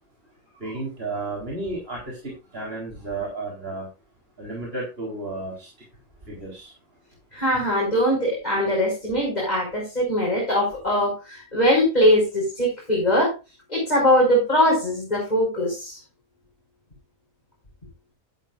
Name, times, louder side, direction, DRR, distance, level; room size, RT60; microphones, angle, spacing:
voice 1, 0.6-3.9 4.4-5.7 6.3-6.7, right 2 dB, 45° right, 4.2 m, -32 dB
voice 2, 7.3-13.3 13.7-16.0, equal, 30° left, 5.5 m, -21 dB
13.5 x 12.0 x 2.5 m
omnidirectional pair, 1.5 m